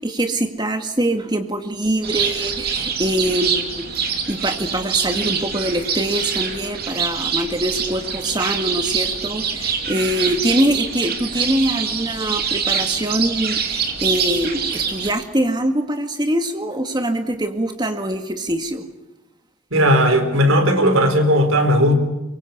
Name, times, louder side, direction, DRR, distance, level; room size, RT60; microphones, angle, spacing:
voice 1, 0.0-3.8 4.3-18.8, right 1 dB, 20° right, 6 dB, 2.0 m, -23 dB
sound 1, 2.0-15.1, right 6 dB, 50° right, 3.0 m, -25 dB
voice 2, 19.7-21.9, equal, 85° right, 7 dB, 4.2 m, -16 dB
23.5 x 23.5 x 8.4 m, 0.99 s
head